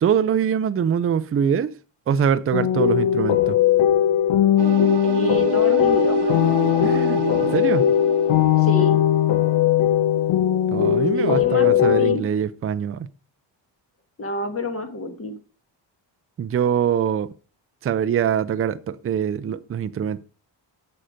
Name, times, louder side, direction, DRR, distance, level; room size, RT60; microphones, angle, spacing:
voice 1, 0.0-1.7 2.1-3.6 6.8-7.9 10.7-13.1 16.4-17.3 17.8-20.2, right 8 dB, 30° right, 0.5 m, -23 dB
sound 1, 2.5-12.2, left 11 dB, 90° left, 0.9 m, -19 dB
sound 2, 4.6-9.7, right 10 dB, 60° right, 0.9 m, -29 dB
voice 2, 5.0-6.4 8.6-9.0 11.1-12.3 14.2-15.4, left 1 dB, 30° left, 1.5 m, -28 dB
8.6 x 6.6 x 5.0 m
cardioid pair, 140°, 45 cm